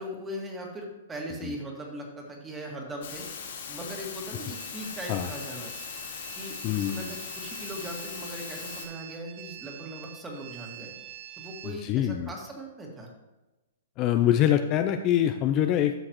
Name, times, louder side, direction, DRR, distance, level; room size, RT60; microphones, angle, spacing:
voice 1, 0.0-3.3 3.7-5.7 6.3-11.0 11.4-13.1, right 1 dB, 15° right, 0 dB, 1.8 m, -39 dB
sound 1, 3.0-8.8, left 7 dB, 70° left, 2.5 m, -39 dB
sound 2, 4.5-11.8, right 14 dB, 45° right, 0.6 m, -46 dB
voice 2, 6.6-7.1 11.6-12.3 14.0-15.9, left 11 dB, 35° left, 7 dB, 0.4 m, -24 dB
12.0 x 6.5 x 3.0 m, 1.1 s
hypercardioid pair, 140°, 0 cm